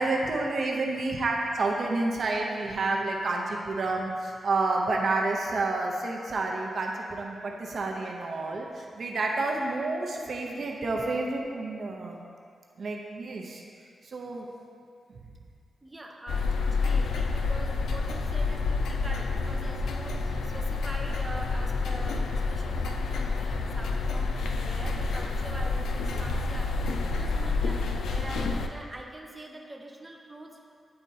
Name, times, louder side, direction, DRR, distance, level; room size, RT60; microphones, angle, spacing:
voice 1, 0.0-12.2 12.8-13.6 14.1-14.5, right 3 dB, 65° right, 0 dB, 0.7 m, -29 dB
voice 2, 15.8-30.6, right 1 dB, 20° right, 0 dB, 0.7 m, -44 dB
sound 1, 16.3-28.7, left 3 dB, 90° left, 0.4 m, -28 dB
9.6 x 4.3 x 2.8 m, 2.2 s
cardioid pair, 75°, 0 cm